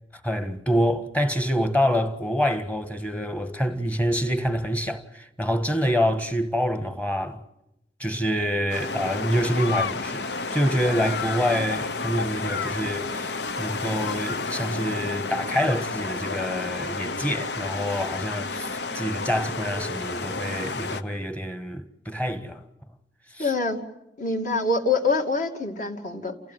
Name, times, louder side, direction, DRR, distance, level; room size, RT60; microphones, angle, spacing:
voice 1, 0.2-7.4 8.0-22.6 23.3-23.5, equal, 10° left, 1.5 m, -26 dB
sound 1, 8.7-21.0, left 4 dB, 70° left, 1.0 m, -31 dB
voice 2, 23.4-23.8 24.2-26.5, left 3 dB, 45° left, 2.7 m, -25 dB
29.5 x 15.5 x 9.3 m
head